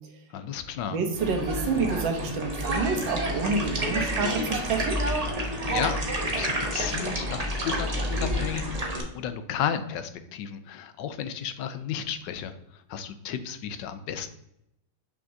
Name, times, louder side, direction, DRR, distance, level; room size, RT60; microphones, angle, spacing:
voice 1, 0.3-1.0 5.7-6.0 6.3-14.3, left 8 dB, 75° left, 10 dB, 1.2 m, -33 dB
voice 2, 0.9-5.0, right 4 dB, 85° right, 5 dB, 1.7 m, -28 dB
sound 1, 1.1-9.0, equal, 25° right, 0.9 m, -29 dB
6.1 x 5.9 x 2.6 m, 0.83 s
omnidirectional pair, 2.0 m